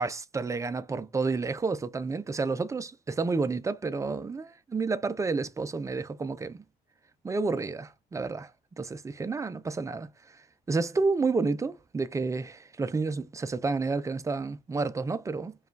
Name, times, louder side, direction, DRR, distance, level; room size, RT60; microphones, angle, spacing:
voice 1, 0.0-6.6 7.2-8.5 8.8-10.4 10.7-15.5, right 4 dB, 20° right, 0.4 m, -30 dB
4.9 x 2.4 x 3.2 m
cardioid pair, 110°, 17 cm